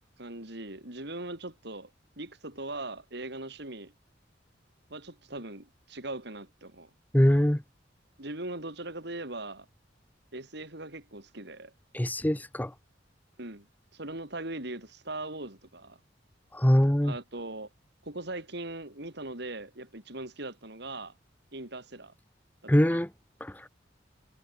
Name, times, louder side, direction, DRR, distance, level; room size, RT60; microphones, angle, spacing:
voice 1, 0.2-1.9 2.2-3.9 4.9-6.9 8.2-9.7 10.3-11.7 13.4-13.7 13.9-16.0 17.0-17.7 18.0-21.1 21.5-22.1 22.6-23.0, right 2 dB, 60° right, 5.0 m, -40 dB
voice 2, 7.1-7.6 11.9-12.7 16.5-17.1 22.7-23.1 23.4-23.5, equal, 10° left, 0.9 m, -23 dB
head